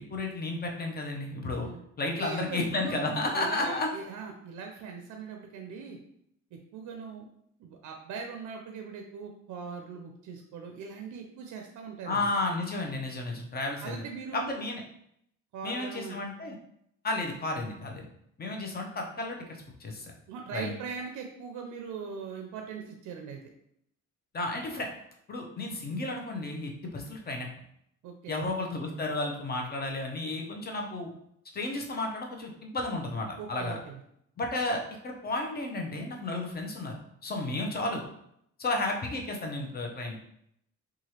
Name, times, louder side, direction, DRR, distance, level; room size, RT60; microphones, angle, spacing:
voice 1, 0.0-1.7 2.0-3.9 12.0-14.0 14.3-14.8 15.6-16.6 17.0-18.1 18.4-19.4 19.8-20.1 20.5-20.7 24.3-24.9 25.3-27.5 28.3-31.1 31.5-33.8 34.4-37.0 37.2-38.0 38.6-40.2, left 2 dB, 30° left, 1 dB, 0.6 m, -32 dB
voice 2, 2.1-6.0 6.5-7.3 7.6-12.3 13.8-14.6 15.5-16.2 20.3-23.4 28.0-28.5 33.4-34.0, right 5 dB, 75° right, 3 dB, 0.5 m, -40 dB
2.9 x 2.4 x 2.8 m, 0.74 s
cardioid pair, 90°, 30 cm